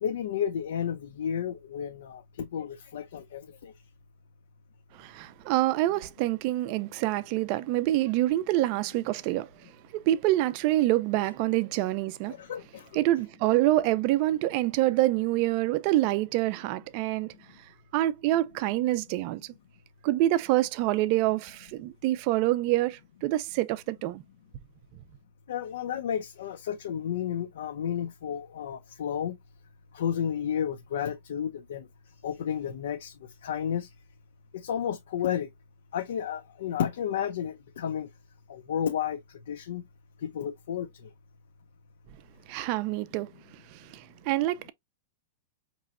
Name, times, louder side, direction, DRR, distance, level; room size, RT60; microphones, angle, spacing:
voice 1, 0.0-3.7 12.3-12.9 25.5-29.3 29.9-31.9 32.2-33.9 34.5-35.5 35.9-38.1 38.5-39.2 39.5-39.8 40.2-40.9, left 9 dB, 70° left, 0.5 m, -32 dB
voice 2, 5.0-9.5 9.9-12.3 12.9-17.3 17.9-19.4 20.0-24.2 42.5-43.3 43.7-44.7, right 16 dB, 35° right, 0.4 m, -26 dB
5.1 x 3.0 x 2.4 m
supercardioid pair, 175°, 0 cm